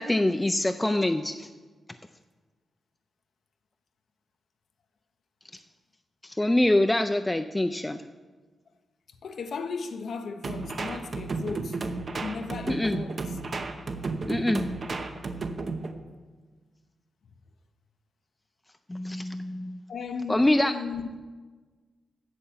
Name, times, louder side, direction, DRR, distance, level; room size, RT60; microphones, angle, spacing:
voice 1, 0.0-1.5 6.2-8.0 12.7-13.0 14.3-14.6 18.9-19.8 20.3-20.7, left 1 dB, 15° left, 0.4 m, -25 dB
voice 2, 9.2-11.8 12.2-13.4 15.4-15.6 19.9-21.1, left 5 dB, 70° left, 0.6 m, -36 dB
sound 1, 10.4-15.9, right 3 dB, 50° right, 0.8 m, -33 dB
8.5 x 6.7 x 7.3 m
cardioid pair, 85°, 0 cm